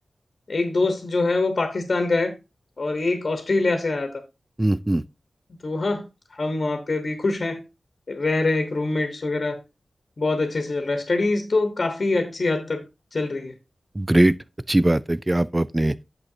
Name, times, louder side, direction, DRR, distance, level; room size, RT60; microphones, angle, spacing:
voice 1, 0.5-2.3 2.8-4.2 5.5-6.1 6.3-7.6 8.1-9.6 10.2-12.8 13.1-13.5, left 3 dB, 55° left, 1.1 m, -24 dB
voice 2, 4.6-5.0 14.0-14.3 14.7-16.0, right 1 dB, 20° right, 0.4 m, -20 dB
8.7 x 6.5 x 2.7 m
wide cardioid pair, 65°, 0 cm